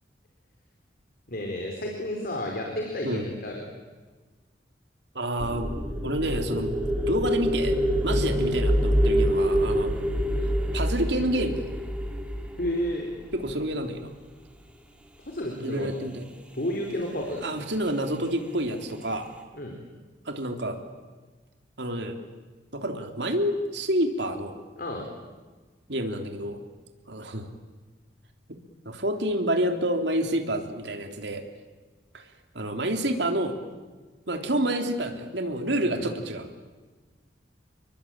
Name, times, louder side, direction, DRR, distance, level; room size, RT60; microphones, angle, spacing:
voice 1, 1.3-3.6 8.1-8.2 12.6-13.1 15.2-15.9 16.5-17.4 19.6-19.8 24.8-25.1 35.8-36.0, left 1 dB, 55° left, 1 dB, 4.4 m, -31 dB
voice 2, 5.1-5.7 6.0-6.7 7.1-7.7 8.0-9.9 10.7-11.6 13.3-14.1 15.6-16.2 17.4-19.3 20.2-20.8 21.8-22.2 22.7-24.6 25.9-26.6 27.1-27.5 28.8-31.4 32.1-32.2 32.5-33.5 34.3-36.5, right 1 dB, 70° right, 5 dB, 3.4 m, -28 dB
sound 1, 5.4-13.5, equal, 5° right, 3.0 m, -26 dB
28.5 x 23.0 x 9.0 m, 1.3 s
head